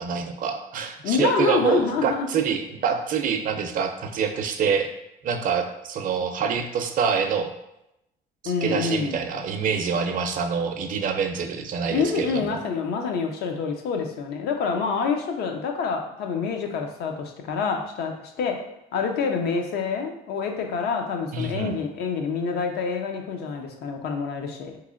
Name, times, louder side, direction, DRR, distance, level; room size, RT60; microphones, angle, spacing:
voice 1, 0.0-4.9 5.2-7.5 8.4-12.6 21.3-21.7, right 6 dB, 55° right, 6 dB, 0.5 m, -26 dB
voice 2, 1.0-2.3 8.4-9.2 11.9-24.8, left 5 dB, 75° left, 4 dB, 0.6 m, -27 dB
3.7 x 3.0 x 2.4 m, 0.85 s
cardioid pair, 110°, 17 cm